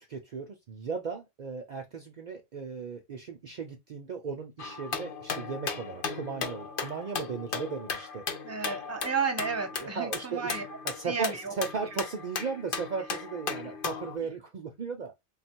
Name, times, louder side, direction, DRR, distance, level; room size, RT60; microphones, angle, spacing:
voice 1, 0.0-8.2 9.8-10.6 10.9-15.1, right 5 dB, 50° right, 0.6 m, -36 dB
sound 1, 4.6-14.2, left 5 dB, 60° left, 0.9 m, -36 dB
voice 2, 8.4-10.6 11.0-11.5 11.9-12.0, right 5 dB, 15° right, 0.7 m, -32 dB
3.5 x 2.3 x 4.3 m
omnidirectional pair, 1.1 m